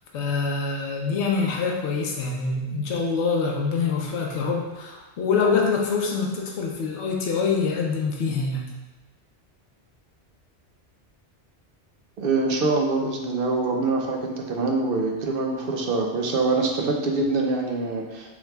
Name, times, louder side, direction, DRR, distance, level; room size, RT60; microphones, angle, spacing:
voice 1, 0.1-8.7, left 4 dB, 85° left, -1 dB, 1.0 m, -25 dB
voice 2, 12.2-18.4, right 3 dB, 60° right, 1 dB, 0.8 m, -24 dB
7.0 x 3.1 x 2.3 m, 1.2 s
omnidirectional pair, 1.1 m